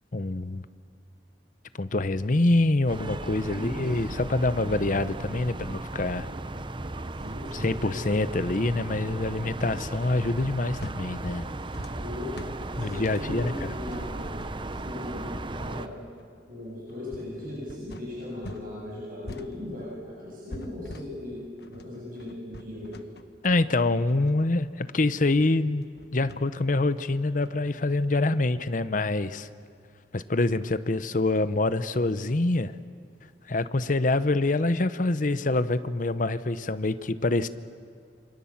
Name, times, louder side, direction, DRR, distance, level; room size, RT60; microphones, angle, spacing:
voice 1, 0.1-0.6 1.8-6.3 7.5-11.5 12.8-13.5 23.4-29.5 30.1-32.7 33.5-37.5, left 2 dB, 50° left, 13 dB, 0.8 m, -26 dB
sound 1, 2.9-15.9, right 2 dB, 30° right, 0.8 m, -36 dB
voice 2, 3.5-4.0 7.1-8.1 11.9-12.3 12.7-14.3 14.8-15.9 16.5-21.4 21.7-23.0, left 1 dB, 50° right, -5 dB, 7.6 m, -38 dB
sound 2, 10.8-18.7 18.9-27.7, left 1 dB, 65° left, 1.4 m, -45 dB
28.5 x 24.5 x 7.4 m, 2.2 s
head